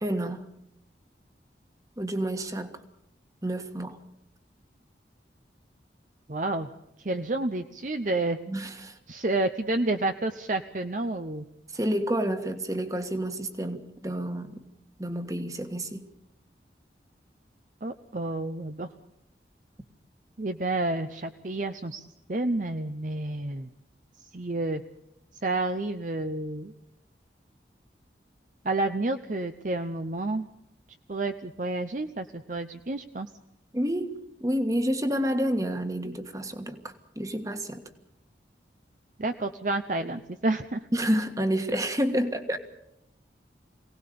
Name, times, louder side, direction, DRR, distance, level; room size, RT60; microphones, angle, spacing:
voice 1, 0.0-0.5 2.0-2.7 3.4-4.0 8.5-9.0 11.7-14.7 15.0-16.0 33.7-34.1 34.4-37.8 40.9-42.6, equal, 20° right, 7 dB, 1.6 m, -29 dB
voice 2, 6.3-6.7 7.0-8.4 9.1-11.4 17.8-18.9 20.4-23.7 24.3-24.8 25.4-26.7 28.6-30.5 31.1-33.3 39.2-40.8, right 2 dB, 45° right, 8 dB, 0.8 m, -30 dB
23.5 x 18.0 x 6.8 m, 0.80 s
head